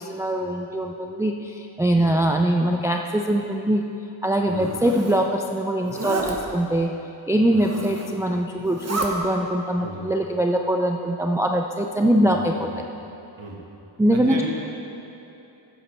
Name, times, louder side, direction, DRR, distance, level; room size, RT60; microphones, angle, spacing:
voice 1, 0.0-3.8 4.2-6.9 7.3-12.7 14.0-14.5, right 1 dB, 5° right, 2 dB, 0.4 m, -22 dB
Zipper (clothing), 4.4-5.2 5.8-6.3 7.4-8.2 8.6-9.1, right 3 dB, 30° right, 1.2 m, -31 dB
voice 2, 4.4-4.7 7.4-7.6 9.8-10.1 12.2-12.7 13.4-13.6 14.1-14.5, right 2 dB, 65° right, -2 dB, 1.7 m, -35 dB
11.0 x 8.6 x 3.4 m, 2.9 s
cardioid pair, 50°, 49 cm